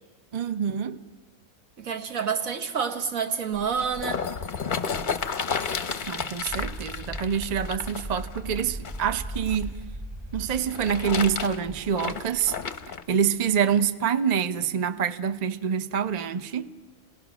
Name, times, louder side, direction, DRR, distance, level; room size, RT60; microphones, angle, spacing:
voice 1, 0.3-1.0 6.1-9.8 10.3-12.5 13.1-16.7, right 7 dB, 40° right, 0.6 m, -26 dB
voice 2, 1.8-4.3, right 6 dB, 65° right, 1.7 m, -28 dB
sound 1, 3.5-9.6 10.5-13.0 13.7-13.8, left 5 dB, 40° left, 0.8 m, -32 dB
sound 2, 6.5-12.9, equal, 20° right, 1.3 m, -39 dB
29.5 x 18.0 x 6.1 m
omnidirectional pair, 1.6 m